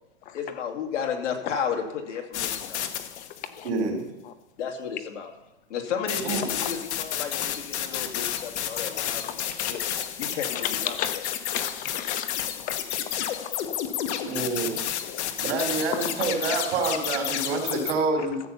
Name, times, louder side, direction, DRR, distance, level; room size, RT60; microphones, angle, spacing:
voice 1, 0.3-2.8 4.6-5.3 5.7-9.2 9.5-9.8 10.2-11.2 15.3-15.4, left 7 dB, 90° left, 2 dB, 2.3 m, -33 dB
sound 1, 2.3-3.6 6.1-17.9, left 10 dB, 70° left, 1.2 m, -31 dB
voice 2, 3.6-4.0 6.2-6.5 14.2-14.7 15.4-18.4, right 3 dB, 70° right, 1 dB, 3.4 m, -27 dB
voice 3, 9.2-9.8 10.5-12.3 12.7-12.8 15.0-15.3 15.9-16.3, left 10 dB, 25° left, 11 dB, 0.7 m, -34 dB
14.0 x 7.0 x 5.7 m, 0.95 s
hypercardioid pair, 145°, 35 cm